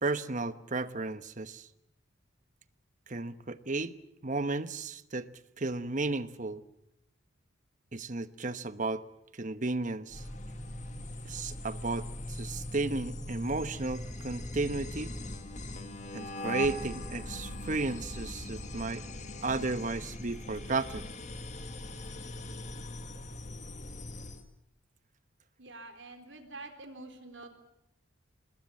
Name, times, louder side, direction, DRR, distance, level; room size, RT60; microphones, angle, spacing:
voice 1, 0.0-1.7 3.1-3.9 4.2-5.3 5.6-6.6 7.9-9.0 9.3-10.2 11.2-15.1 16.1-19.0 19.4-21.1, right 3 dB, 40° right, 12 dB, 1.1 m, -33 dB
sound 1, 10.1-24.4, left 1 dB, 35° left, 2.0 m, -41 dB
voice 2, 25.6-27.5, right 2 dB, 60° right, 7 dB, 3.9 m, -46 dB
26.0 x 20.5 x 8.3 m, 0.81 s
head